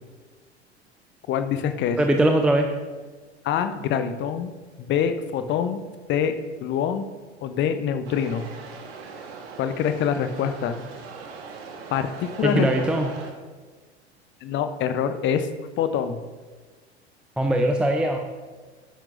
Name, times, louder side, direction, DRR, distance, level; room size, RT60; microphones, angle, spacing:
voice 1, 1.3-2.0 3.4-4.5 4.8-5.8 6.1-6.3 6.6-7.0 7.4-8.5 9.6-10.8 11.9-12.9 14.4-15.5 15.8-16.2, left 8 dB, 35° left, 9 dB, 0.8 m, -25 dB
voice 2, 2.0-2.7 12.4-13.1 17.4-18.2, right 1 dB, 5° right, 4 dB, 0.6 m, -21 dB
sound 1, 8.1-13.3, right 5 dB, 60° right, 1.4 m, -40 dB
12.0 x 10.5 x 2.6 m, 1.4 s
figure-of-eight pair, 80°, 34 cm